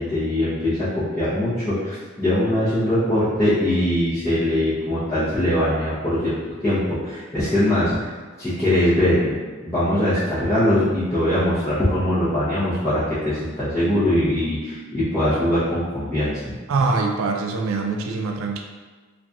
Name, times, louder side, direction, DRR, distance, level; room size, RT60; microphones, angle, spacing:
voice 1, 0.0-6.4 6.6-9.3 9.6-16.4, left 1 dB, 15° left, -15 dB, 0.9 m, -22 dB
voice 2, 16.7-18.6, right 3 dB, 75° right, 2 dB, 0.4 m, -23 dB
3.9 x 2.8 x 2.4 m, 1.4 s
head